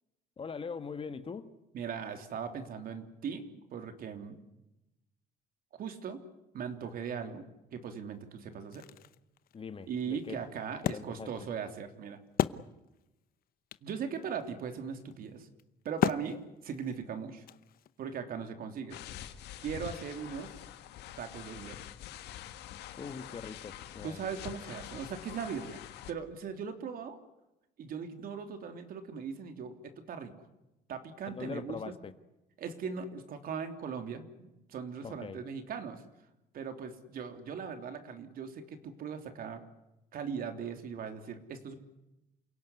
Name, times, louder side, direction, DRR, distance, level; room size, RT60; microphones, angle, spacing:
voice 1, 0.4-1.5 9.5-10.4 10.7-11.3 23.0-24.2 31.3-32.1 35.0-35.4, left 5 dB, 35° left, 1.6 m, -42 dB
voice 2, 1.7-3.4 3.7-4.4 5.8-6.2 6.5-7.4 7.7-8.8 9.9-12.2 13.8-15.5 15.8-17.4 18.0-19.0 19.6-20.5 21.2-21.8 24.0-25.8 26.1-27.2 27.8-30.3 30.9-31.9 32.6-36.0 36.5-39.6 40.1-41.8, right 6 dB, 60° right, 3.2 m, -39 dB
Wood, 8.5-13.2 13.4-13.5 13.7-18.1, left 11 dB, 60° left, 0.9 m, -36 dB
sound 1, 18.9-26.1, left 12 dB, 80° left, 1.8 m, -46 dB
28.5 x 17.5 x 9.7 m
cardioid pair, 110°, 17 cm